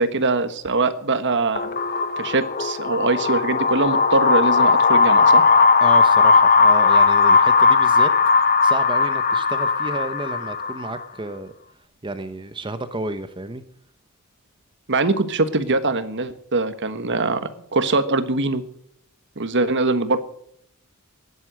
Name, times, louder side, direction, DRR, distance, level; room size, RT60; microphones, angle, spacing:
voice 1, 0.0-1.7 2.2-5.4 14.9-17.4 17.7-18.6 19.4-20.2, right 3 dB, 55° right, 11 dB, 1.4 m, -22 dB
sound 1, 1.6-11.0, left 4 dB, 40° left, 0.9 m, -17 dB
voice 2, 5.8-11.5 12.0-13.6, right 2 dB, 20° right, 10 dB, 0.9 m, -31 dB
16.0 x 11.0 x 6.4 m, 0.69 s
head